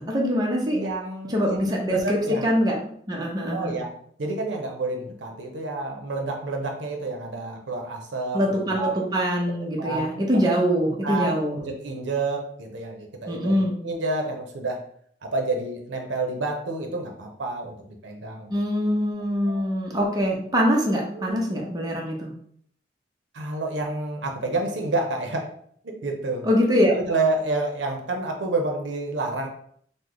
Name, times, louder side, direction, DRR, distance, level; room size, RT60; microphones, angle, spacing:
voice 1, 0.0-0.8 1.3-3.8 8.3-11.6 13.3-13.8 18.5-22.3 26.4-26.9, equal, 20° right, -2 dB, 0.6 m, -23 dB
voice 2, 0.7-2.4 3.5-3.9 4.2-8.9 9.6-10.1 10.3-10.4 11.0-14.8 15.2-17.8 18.0-18.5 19.5-19.7 21.1-21.4 23.3-25.5 25.8-26.5 26.9-29.5, right 2 dB, 85° right, 2 dB, 0.6 m, -29 dB
3.1 x 2.1 x 3.7 m, 0.63 s
head